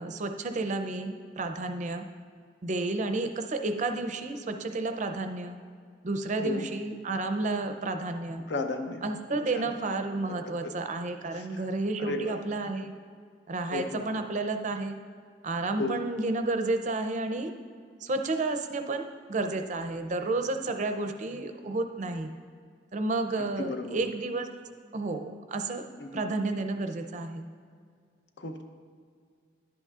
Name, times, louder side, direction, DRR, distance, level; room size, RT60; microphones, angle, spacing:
voice 1, 0.0-2.0 2.6-5.6 6.0-8.4 9.0-12.9 13.5-15.0 15.4-17.5 18.0-22.3 22.9-24.5 24.9-25.8 26.1-27.4, right 2 dB, 40° right, 7 dB, 0.5 m, -31 dB
voice 2, 8.5-9.7 10.4-10.5 11.3-11.6 12.0-12.4 13.7-14.0 15.8-16.0 23.4-24.0 26.0-26.2 28.4-28.6, left 3 dB, 65° left, 5 dB, 0.7 m, -34 dB
10.5 x 8.1 x 2.4 m, 2.1 s
head